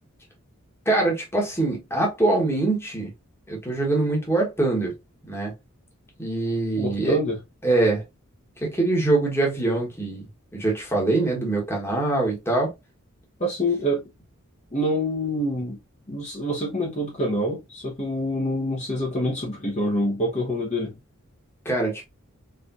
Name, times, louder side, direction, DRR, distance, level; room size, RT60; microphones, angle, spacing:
voice 1, 0.8-3.1 3.5-4.9 5.3-5.5 6.2-7.2 7.6-8.0 8.6-10.2 10.5-12.7 21.6-22.0, right 2 dB, 10° left, 1.3 m, -23 dB
voice 2, 6.8-7.4 13.4-14.0 14.7-15.8 16.1-20.9, equal, 30° left, 1.0 m, -26 dB
4.4 x 3.3 x 2.5 m
head